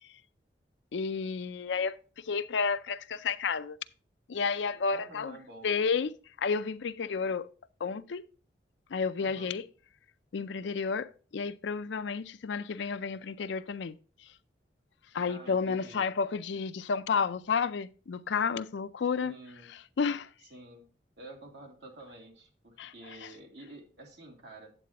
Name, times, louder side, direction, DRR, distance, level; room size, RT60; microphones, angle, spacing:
voice 1, 0.9-2.0 2.2-3.8 4.3-5.4 5.6-6.1 6.4-7.5 7.8-8.2 8.9-9.6 10.3-14.0 14.2-14.3 15.1-19.3 20.0-20.3 22.8-23.3, left 5 dB, 80° left, 0.4 m, -31 dB
voice 2, 4.9-5.7 9.2-9.5 15.3-16.1 19.1-19.7 20.5-20.9 21.2-24.7, right 2 dB, 70° right, 2.3 m, -49 dB
9.0 x 8.3 x 2.9 m
head